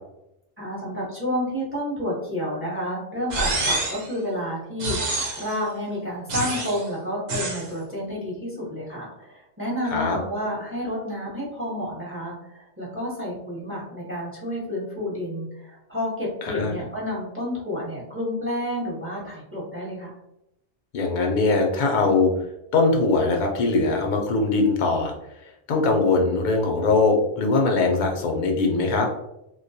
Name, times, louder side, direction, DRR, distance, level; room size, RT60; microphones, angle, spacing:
voice 1, 0.6-20.1, equal, 15° right, -6 dB, 0.7 m, -30 dB
sound 1, 3.3-4.1 4.8-5.6 6.3-6.8 7.3-7.7, right 2 dB, 85° right, 1.0 m, -27 dB
voice 2, 20.9-22.3 22.7-25.1 25.7-29.1, left 3 dB, 55° left, 1 dB, 0.5 m, -21 dB
2.2 x 2.2 x 2.6 m, 0.86 s
omnidirectional pair, 1.2 m